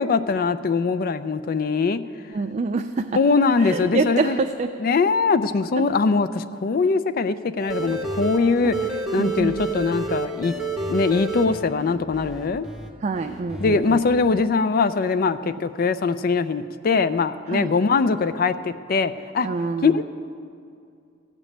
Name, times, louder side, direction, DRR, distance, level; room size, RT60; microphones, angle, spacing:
voice 1, 0.0-2.0 3.1-4.4 4.8-8.7 9.1-10.5 10.9-12.7 13.6-19.5 19.8-20.0, left 4 dB, 50° left, 12 dB, 0.4 m, -22 dB
voice 2, 2.3-3.0 3.6-4.7 9.2-9.5 13.0-14.0 17.5-17.7 19.4-20.0, right 3 dB, 35° right, 6 dB, 0.4 m, -25 dB
sound 1, 7.6-12.9 13.1-14.0, right 3 dB, ahead, 1.0 m, -30 dB
15.0 x 5.2 x 8.6 m, 2.4 s
head